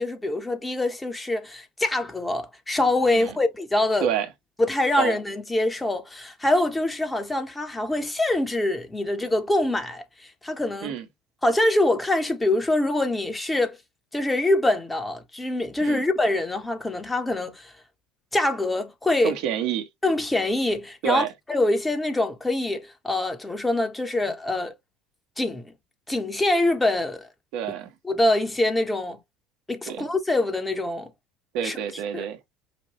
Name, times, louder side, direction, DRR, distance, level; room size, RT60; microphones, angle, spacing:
voice 1, 0.0-4.1 4.6-10.9 11.4-13.8 14.1-17.7 18.3-19.3 20.0-24.7 25.4-25.7 26.1-27.3 28.0-29.2 29.7-31.1 31.6-31.8 32.1-32.2, left 1 dB, 15° left, 1.3 m, -24 dB
voice 2, 19.2-19.9 21.0-21.3 27.5-27.9 29.9-30.1 31.5-32.4, right 9 dB, 60° right, 1.2 m, -28 dB
5.3 x 2.5 x 3.1 m
hypercardioid pair, 70°, 0 cm